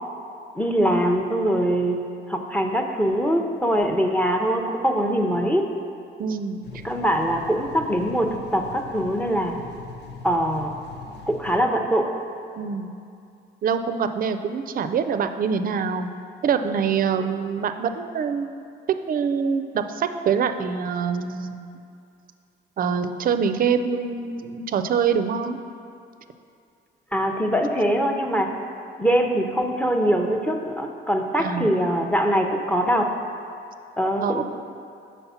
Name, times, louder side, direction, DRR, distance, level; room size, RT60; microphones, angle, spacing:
voice 1, 0.5-2.0 2.3-5.7 6.8-9.6 10.2-10.7 11.3-12.1 27.1-28.5 29.0-33.1 34.0-34.4, equal, 5° left, 3 dB, 0.6 m, -22 dB
voice 2, 6.2-6.6 12.6-12.9 13.6-16.1 16.4-18.6 19.1-21.7 22.8-25.6 31.4-31.7 34.2-34.4, right 6 dB, 45° right, 9 dB, 0.4 m, -25 dB
sound 1, 6.6-11.6, left 5 dB, 60° left, 0.7 m, -41 dB
5.6 x 4.1 x 5.6 m, 2.5 s
cardioid pair, 90°, 20 cm